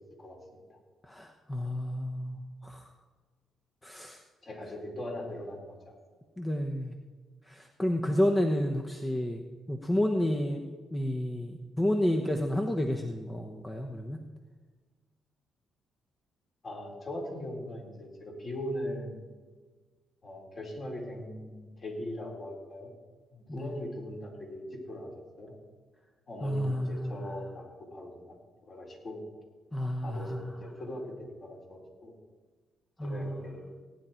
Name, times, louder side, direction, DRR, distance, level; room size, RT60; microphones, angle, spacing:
voice 1, 1.1-2.9 3.8-4.2 6.4-7.0 7.5-14.2 23.5-23.7 26.4-27.2 29.7-30.6 33.0-33.6, left 1 dB, 15° left, 3 dB, 1.0 m, -31 dB
voice 2, 4.4-5.9 16.6-19.2 20.2-22.9 23.3-25.6 26.3-27.6 27.9-28.2 28.6-29.2 30.0-32.1 33.0-33.6, left 1 dB, 40° left, -1 dB, 4.4 m, -40 dB
18.0 x 9.8 x 4.5 m, 1.4 s
cardioid pair, 90°, 0 cm